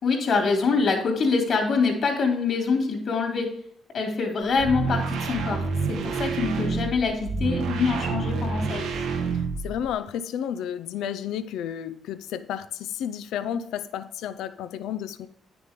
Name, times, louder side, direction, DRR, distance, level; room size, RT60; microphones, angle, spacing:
voice 1, 0.0-3.5 3.9-8.9, left 4 dB, 60° left, 3.1 m, -25 dB
sound 1, 4.4-9.9, right 4 dB, 90° right, 1.4 m, -28 dB
voice 2, 9.6-15.3, left 9 dB, 85° left, 0.5 m, -32 dB
9.8 x 6.9 x 3.7 m
cardioid pair, 90°, 0 cm